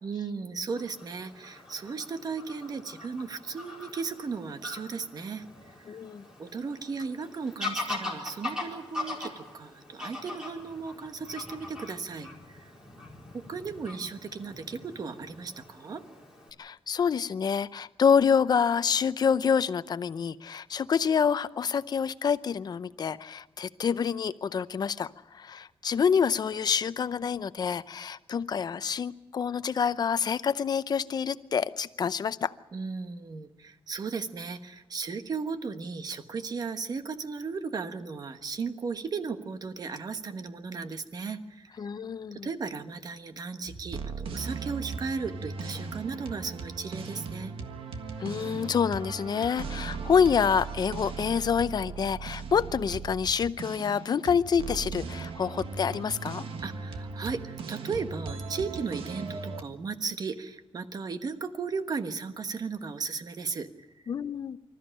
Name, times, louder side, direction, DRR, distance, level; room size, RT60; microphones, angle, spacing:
voice 1, 0.0-6.0 6.4-12.7 13.3-16.0 32.7-41.9 42.3-47.5 56.6-64.0, right 5 dB, 40° right, 9 dB, 1.3 m, -36 dB
Fowl / Bird vocalization bird call bird song, 0.8-16.5, left 2 dB, 10° right, 4.6 m, -41 dB
voice 2, 5.9-6.2 16.6-32.5 41.8-42.5 48.2-56.4 64.1-64.6, left 7 dB, 45° left, 14 dB, 0.6 m, -27 dB
sound 1, 43.7-59.6, right 4 dB, 70° right, 1.6 m, -38 dB
25.5 x 14.0 x 10.0 m, 1.1 s
wide cardioid pair, 165°, 10 cm